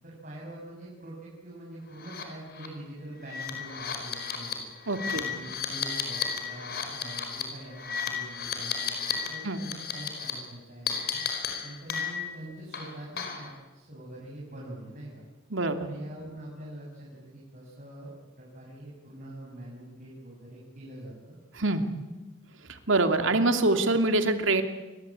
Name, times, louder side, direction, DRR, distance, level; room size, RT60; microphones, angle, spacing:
voice 1, 0.0-4.7 5.1-11.2 11.6-15.2 15.8-18.1 18.3-21.4, right 1 dB, 45° right, -4 dB, 7.7 m, -44 dB
sound 1, 2.0-2.2 2.6-2.7 3.2-9.3 9.5-10.3 10.9-12.4 12.7-13.5, left 6 dB, 50° left, 5.0 m, -33 dB
voice 2, 4.9-5.2 9.4-9.6 15.5-15.9 21.6-21.8 22.7-24.6, right 2 dB, 70° right, 7 dB, 2.7 m, -25 dB
29.0 x 22.5 x 8.8 m, 1.1 s
head